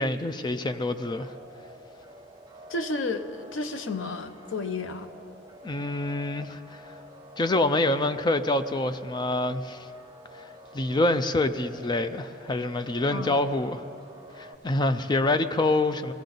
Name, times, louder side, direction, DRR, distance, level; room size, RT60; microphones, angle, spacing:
voice 1, 0.0-1.3 5.6-6.9 7.4-9.9 10.7-13.8 14.4-16.1, left 2 dB, 25° left, 0.4 m, -26 dB
sound 1, 0.7-14.6, equal, 20° right, 0.7 m, -49 dB
voice 2, 2.7-5.1 6.4-6.5 13.1-13.4, left 3 dB, 75° left, 0.7 m, -32 dB
21.5 x 16.0 x 4.0 m
head